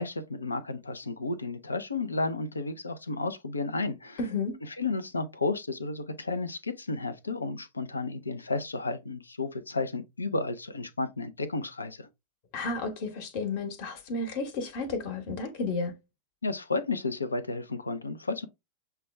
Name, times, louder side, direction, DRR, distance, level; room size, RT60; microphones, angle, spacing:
voice 1, 0.0-4.2 4.8-12.1 16.4-18.5, left 3 dB, 80° left, 0.5 m, -32 dB
voice 2, 4.2-4.6 12.5-15.9, left 3 dB, 45° left, 1.0 m, -32 dB
6.7 x 2.3 x 3.2 m
figure-of-eight pair, 90°, 0 cm